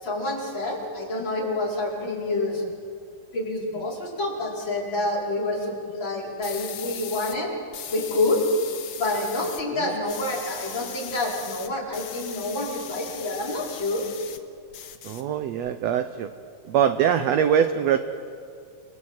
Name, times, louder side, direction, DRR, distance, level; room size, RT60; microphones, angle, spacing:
voice 1, 0.0-2.6 3.3-7.5 7.9-8.4 9.0-14.0, left 2 dB, 35° left, -4 dB, 5.6 m, -28 dB
sound 1, 6.4-7.4 7.7-9.6 9.9-14.4 14.7-15.7, left 10 dB, 75° left, 2.7 m, -39 dB
voice 2, 15.0-16.3 16.7-18.0, right 9 dB, 70° right, 10 dB, 1.7 m, -22 dB
29.0 x 20.5 x 8.9 m, 2.4 s
omnidirectional pair, 3.7 m